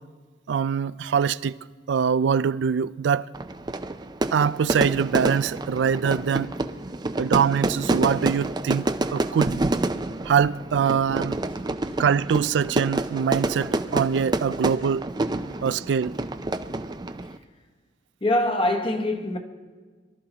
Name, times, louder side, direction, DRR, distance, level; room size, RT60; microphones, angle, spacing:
voice 1, 0.5-1.6 1.9-3.3 4.3-6.5 7.2-8.9 9.1-9.6 10.3-11.4 12.0-15.1 15.6-16.1, right 7 dB, 90° right, 0.3 m, -23 dB
Fire / Fireworks, 3.3-17.4, right 2 dB, 25° right, 0.5 m, -28 dB
voice 2, 18.2-19.4, left 1 dB, 30° left, 1.1 m, -23 dB
23.0 x 12.5 x 2.9 m
head